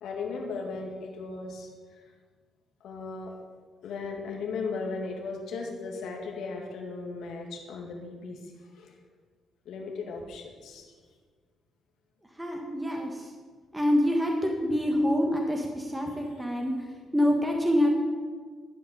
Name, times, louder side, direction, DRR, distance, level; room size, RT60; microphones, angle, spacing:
voice 1, 0.0-2.0 2.8-3.3 3.8-9.0 9.7-10.9 12.9-13.0 16.1-16.4, left 4 dB, 80° left, 1 dB, 2.3 m, -37 dB
voice 2, 12.4-13.3 13.7-16.7 17.1-17.9, equal, 10° right, 1 dB, 1.7 m, -26 dB
13.0 x 5.2 x 8.9 m, 1.5 s
cardioid pair, 90°, 0 cm